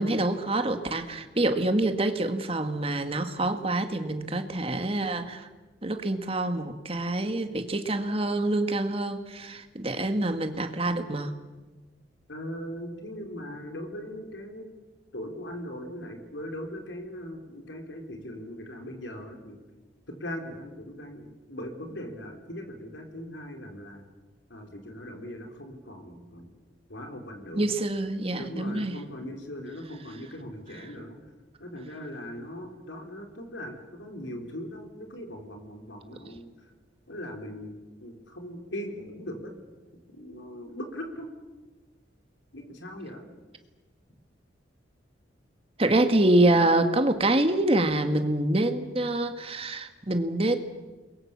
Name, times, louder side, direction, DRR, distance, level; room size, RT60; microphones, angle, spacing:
voice 1, 0.0-5.5 5.8-11.3 27.6-29.0 45.8-50.6, right 1 dB, 30° right, 7 dB, 1.9 m, -26 dB
voice 2, 12.3-14.7 15.1-19.6 20.1-24.1 24.5-26.5 26.9-27.7 28.3-31.2 31.6-36.5 37.1-39.6 40.1-41.3 42.5-43.3, equal, 85° left, 3 dB, 4.2 m, -39 dB
29.0 x 22.5 x 7.4 m, 1.3 s
head